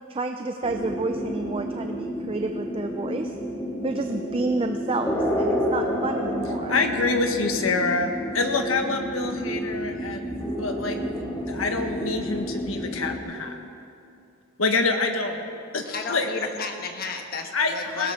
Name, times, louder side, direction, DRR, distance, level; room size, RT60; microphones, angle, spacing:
voice 1, 0.1-3.3 3.8-6.8, right 2 dB, 25° right, 6 dB, 0.5 m, -30 dB
sound 1, 0.6-13.2, equal, 15° left, 1.8 m, -30 dB
voice 2, 6.7-11.0 11.5-13.6 14.6-15.5 15.7-16.3 17.5-18.1, left 3 dB, 90° left, 5 dB, 1.4 m, -26 dB
voice 3, 15.8-18.1, left 4 dB, 45° left, 4 dB, 1.4 m, -33 dB
20.0 x 16.5 x 3.7 m, 2.5 s
head